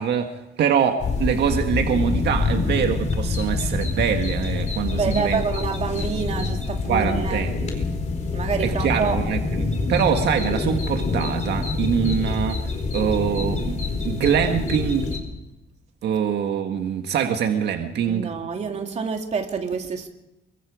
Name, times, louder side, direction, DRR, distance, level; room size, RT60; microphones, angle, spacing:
voice 1, 0.0-5.4 6.9-7.8 8.6-12.7 12.9-15.1 16.0-18.3, right 8 dB, 70° right, 5 dB, 1.8 m, -24 dB
sound 1, 1.0-15.2, left 3 dB, 40° left, 4.2 m, -26 dB
voice 2, 5.0-7.4 8.3-9.2 18.0-20.1, right 5 dB, 40° right, 3 dB, 2.7 m, -27 dB
28.0 x 23.5 x 5.0 m, 0.93 s
cardioid pair, 155°, 18 cm